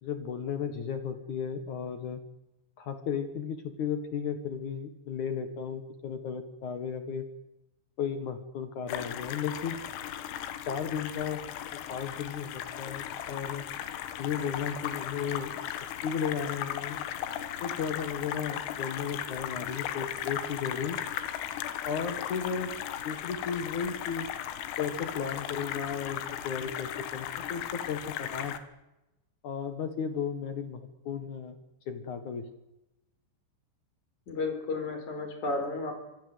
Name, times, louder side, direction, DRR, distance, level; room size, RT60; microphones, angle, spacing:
voice 1, 0.0-2.2 2.8-7.2 8.0-9.8 10.6-11.5 11.9-13.6 14.2-15.5 16.0-17.0 17.6-21.0 21.8-22.8 23.0-24.3 24.8-28.6 29.4-31.6 31.9-32.4, left 7 dB, 60° left, 9 dB, 2.2 m, -34 dB
sound 1, 8.9-28.6, left 11 dB, 85° left, 4.2 m, -37 dB
voice 2, 34.3-35.9, left 3 dB, 40° left, 5 dB, 5.6 m, -32 dB
26.5 x 22.5 x 8.1 m, 0.95 s
omnidirectional pair, 5.7 m